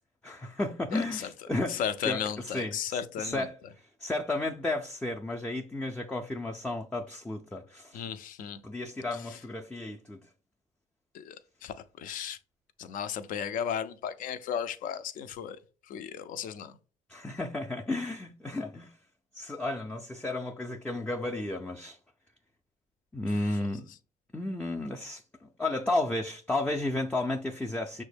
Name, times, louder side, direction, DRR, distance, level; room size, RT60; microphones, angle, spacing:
voice 1, 0.2-3.6 4.0-8.0 8.6-10.2 17.1-18.9 19.3-22.0 23.1-23.9 24.3-28.0, left 2 dB, 5° left, 0.4 m, -33 dB
voice 2, 0.9-1.3 1.7-3.5 7.9-8.6 9.3-9.4 11.1-12.4 12.8-15.6 15.9-16.7 23.3-23.6, left 8 dB, 70° left, 0.5 m, -35 dB
5.9 x 2.1 x 3.3 m
cardioid pair, 100°, 15 cm